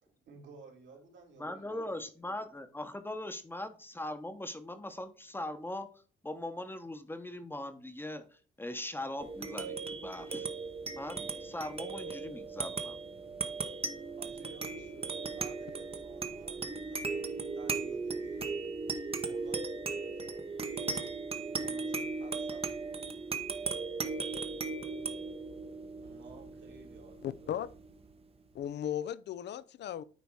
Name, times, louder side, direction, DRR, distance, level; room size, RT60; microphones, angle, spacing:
voice 1, 0.0-1.8 14.2-18.5 19.1-20.4 20.8-23.2 26.0-27.5, right 4 dB, 70° right, 2.7 m, -55 dB
voice 2, 1.4-5.9 6.2-10.5 11.0-13.0, left 1 dB, 10° left, 1.0 m, -40 dB
sound 1, 9.2-28.1, right 4 dB, 30° right, 0.8 m, -37 dB
voice 3, 27.2-27.7 28.5-30.0, left 10 dB, 60° left, 0.5 m, -36 dB
9.5 x 3.4 x 4.6 m
cardioid pair, 90°, 20 cm